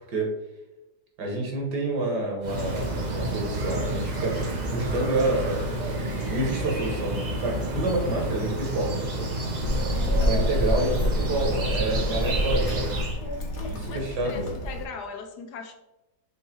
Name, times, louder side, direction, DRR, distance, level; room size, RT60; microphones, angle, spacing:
voice 1, 1.2-5.7 6.3-9.3 10.3-13.0 13.7-14.6, right 2 dB, 65° right, 0 dB, 1.9 m, -28 dB
sound 1, 2.4-13.2, right 2 dB, 45° right, 0.5 m, -29 dB
Child speech kid speaking, 9.6-14.8, left 1 dB, 45° left, 1.1 m, -28 dB
voice 2, 13.9-15.7, left 5 dB, 70° left, 5 dB, 1.1 m, -39 dB
6.5 x 3.2 x 4.4 m, 0.97 s
omnidirectional pair, 2.0 m